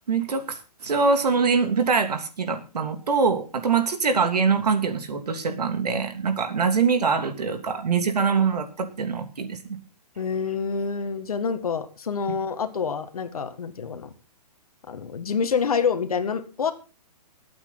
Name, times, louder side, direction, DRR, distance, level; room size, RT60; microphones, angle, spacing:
voice 1, 0.1-9.8, right 5 dB, 75° right, 7 dB, 3.0 m, -24 dB
voice 2, 10.2-14.1 14.9-16.7, left 6 dB, 65° left, 8 dB, 2.0 m, -27 dB
22.5 x 8.8 x 4.0 m, 0.33 s
hypercardioid pair, 175°, 20 cm